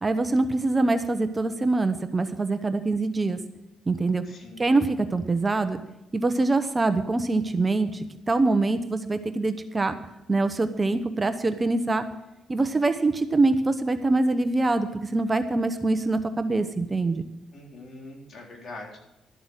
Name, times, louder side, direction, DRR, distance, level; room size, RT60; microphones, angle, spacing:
voice 1, 0.0-3.4 3.9-4.2 4.6-5.8 6.1-9.9 10.3-12.0 12.5-17.2, right 2 dB, 25° right, 9 dB, 0.9 m, -24 dB
voice 2, 4.3-4.7 17.5-19.0, left 2 dB, 55° left, 0 dB, 3.8 m, -43 dB
12.5 x 7.9 x 6.4 m, 0.98 s
cardioid pair, 90°, 0 cm